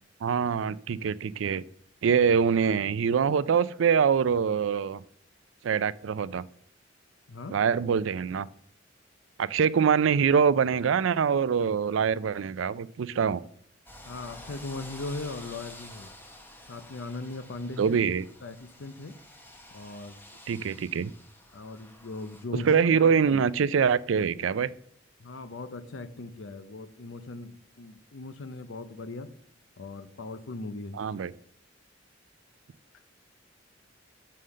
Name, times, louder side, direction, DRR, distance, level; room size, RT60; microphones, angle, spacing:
voice 1, 0.2-1.6 2.0-5.0 5.6-6.4 7.5-8.5 9.4-13.4 17.8-18.2 20.5-21.1 22.6-24.7 30.9-31.3, right 6 dB, 80° right, 18 dB, 0.4 m, -24 dB
sound 1, 13.9-22.5, left 1 dB, 10° left, 1.0 m, -49 dB
voice 2, 14.0-16.1 16.7-18.0 18.4-19.2 19.7-20.2 21.5-23.4 25.2-29.3 29.8-31.0, left 2 dB, 70° left, 13 dB, 0.6 m, -39 dB
6.4 x 5.6 x 6.5 m, 0.62 s
head